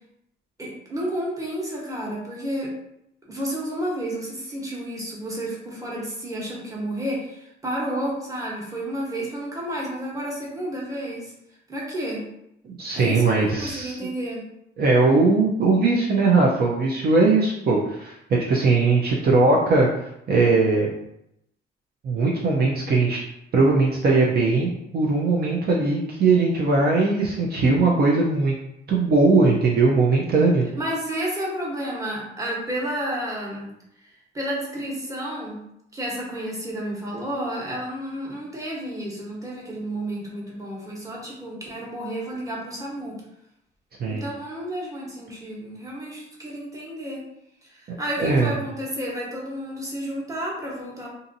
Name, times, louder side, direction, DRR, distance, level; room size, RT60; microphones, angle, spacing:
voice 1, 0.6-2.7 3.3-11.3 11.7-12.2 12.9-14.4 30.8-33.7 34.0-35.6 35.9-43.1 44.1-47.2 47.6-51.1, right 1 dB, 15° right, -4 dB, 1.1 m, -31 dB
voice 2, 12.7-14.0 14.8-19.9 20.3-20.9 22.0-23.2 23.5-28.5 28.9-30.7 44.0-44.2 48.2-48.5, right 3 dB, 50° right, -3 dB, 0.6 m, -20 dB
2.7 x 2.6 x 2.6 m, 0.80 s
cardioid pair, 90°, 20 cm